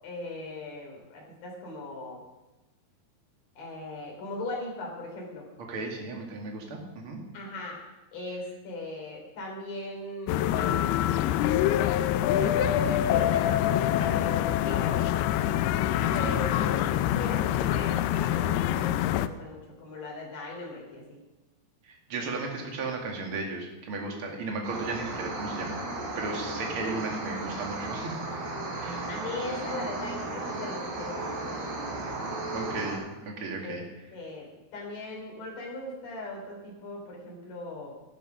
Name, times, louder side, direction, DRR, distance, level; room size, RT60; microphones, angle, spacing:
voice 1, 0.0-2.2 3.6-5.4 7.3-7.8 8.1-10.8 12.4-15.0 16.1-21.2 29.1-31.9 33.6-33.8 34.1-37.9, left 2 dB, 55° left, -1 dB, 5.3 m, -38 dB
voice 2, 5.6-7.2 16.0-16.3 21.8-25.8 26.2-28.1 28.7-29.1 32.5-33.8, right 3 dB, 40° right, 1 dB, 2.3 m, -35 dB
sound 1, 10.3-19.3, left 12 dB, 80° left, 2.4 m, -25 dB
sound 2, 24.6-33.0, right 2 dB, 70° right, 5.5 m, -35 dB
13.5 x 13.0 x 5.3 m, 1.1 s
omnidirectional pair, 4.8 m